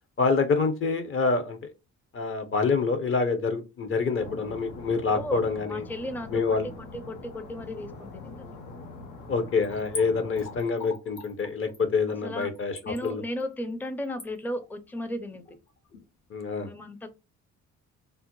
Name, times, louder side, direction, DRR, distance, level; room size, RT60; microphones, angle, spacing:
voice 1, 0.2-1.6 2.1-5.8 6.3-6.7 9.3-13.2 16.3-16.7, left 4 dB, 45° left, 8 dB, 0.8 m, -26 dB
sound 1, 4.2-10.7, left 3 dB, 85° left, 0.9 m, -43 dB
voice 2, 5.1-8.5 12.2-12.5 12.9-15.4 16.6-17.1, left 1 dB, 5° left, 10 dB, 0.5 m, -35 dB
Splash splatter / Trickle dribble, 9.6-16.0 16.4-16.5, left 3 dB, 70° left, 1.5 m, -43 dB
3.4 x 2.1 x 3.0 m, 0.27 s
cardioid pair, 90°, 30 cm